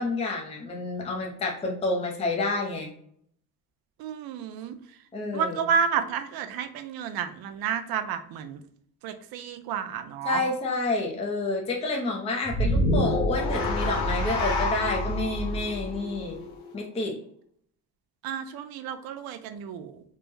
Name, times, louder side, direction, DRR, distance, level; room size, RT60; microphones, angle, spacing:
voice 1, 0.0-2.9 5.1-5.7 10.2-16.4 16.7-17.2, left 2 dB, 15° left, 0 dB, 0.5 m, -29 dB
voice 2, 4.0-4.7 5.3-8.6 9.0-10.4 18.2-19.9, right 7 dB, 70° right, 9 dB, 0.5 m, -30 dB
sound 1, 12.5-16.8, left 1 dB, 50° left, 0.9 m, -27 dB
3.4 x 2.0 x 3.2 m, 0.66 s
cardioid pair, 135°, 38 cm